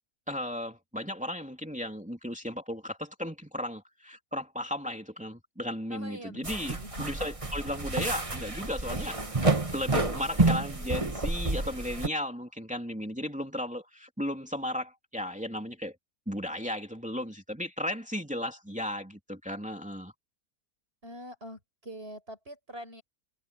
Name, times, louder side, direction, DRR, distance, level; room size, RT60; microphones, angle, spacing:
voice 1, 0.3-9.2 9.7-15.9 16.3-20.1, left 1 dB, 5° right, 3.0 m, -35 dB
voice 2, 5.9-7.1 21.0-23.0, equal, 40° right, 6.8 m, -44 dB
sound 1, 6.4-12.1, right 2 dB, 20° right, 2.0 m, -29 dB
omnidirectional pair, 1.5 m